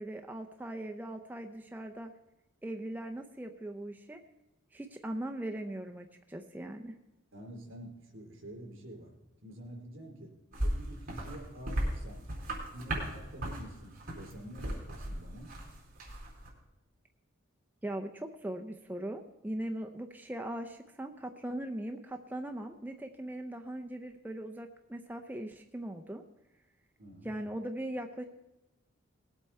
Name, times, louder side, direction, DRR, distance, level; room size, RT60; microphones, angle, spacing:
voice 1, 0.0-2.1 2.6-4.2 4.7-7.0 17.8-26.2 27.2-28.2, right 1 dB, 10° right, 3 dB, 0.5 m, -40 dB
voice 2, 7.3-9.1 9.4-10.3 10.6-12.2 12.7-15.5 27.0-27.3, right 1 dB, 65° right, 0 dB, 4.1 m, -47 dB
sound 1, 10.5-16.5, right 1 dB, 40° right, 3.8 m, -37 dB
19.0 x 8.1 x 4.4 m, 0.98 s
head